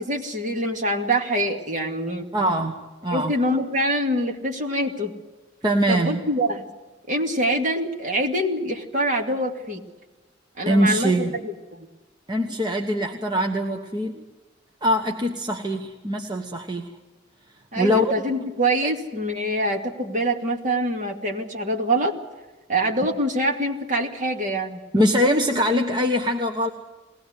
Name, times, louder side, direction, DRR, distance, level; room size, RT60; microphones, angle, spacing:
voice 1, 0.0-2.3 3.1-5.1 5.9-6.6 7.1-9.8 10.6-11.9 17.7-22.2 22.7-24.8, right 1 dB, 40° right, 2 dB, 2.4 m, -25 dB
voice 2, 2.3-3.3 5.6-6.2 10.6-11.4 12.3-14.2 14.8-16.9 17.8-18.1 18.8-18.9 24.9-26.7, equal, 25° right, 2 dB, 1.2 m, -23 dB
22.0 x 18.5 x 8.1 m, 1.2 s
head